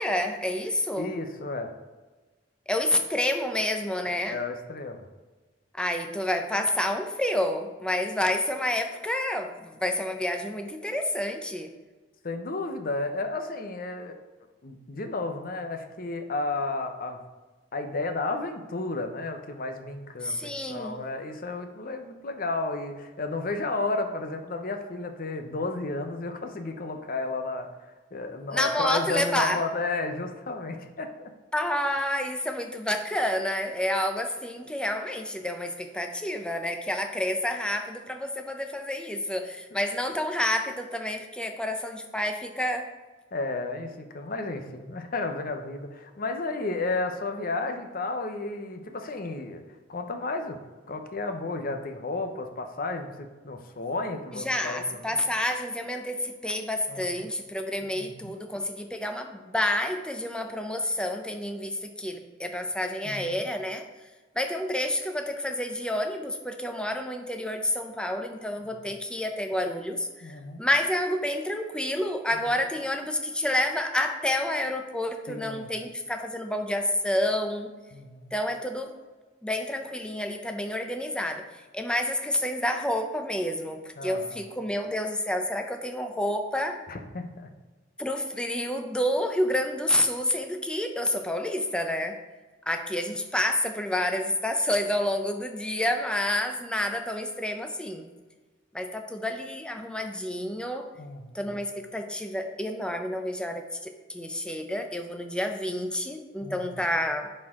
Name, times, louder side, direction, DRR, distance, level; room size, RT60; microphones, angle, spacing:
voice 1, 0.0-1.1 2.7-4.4 5.8-11.7 20.2-21.0 28.5-29.6 31.5-42.9 54.3-63.8 64.3-77.7 78.3-78.9 79.4-81.4 81.7-86.8 88.0-92.2 92.7-98.1 98.7-100.9 101.3-107.3, left 1 dB, 5° left, 5 dB, 0.6 m, -29 dB
voice 2, 0.9-1.7 4.3-5.1 12.2-14.2 14.6-17.2 17.7-27.7 28.1-31.3 43.3-49.6 49.9-50.6 50.9-54.8 56.9-57.3 57.9-58.4 63.0-63.4 70.2-70.6 75.3-75.7 77.9-78.3 84.0-84.4 86.9-87.5 101.0-101.4 106.4-106.8, left 3 dB, 50° left, 6 dB, 0.7 m, -32 dB
10.5 x 4.4 x 3.7 m, 1.3 s
head